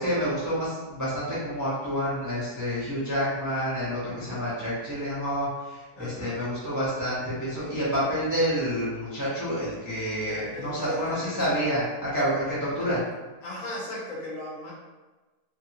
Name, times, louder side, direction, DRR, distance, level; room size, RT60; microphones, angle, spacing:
voice 1, 0.0-13.0, equal, 20° right, -10 dB, 0.6 m, -28 dB
voice 2, 4.1-4.4 5.9-6.4 10.2-11.5 12.8-13.0 13.4-14.7, left 1 dB, 65° left, -4 dB, 1.0 m, -37 dB
2.8 x 2.5 x 2.8 m, 1.2 s
omnidirectional pair, 1.6 m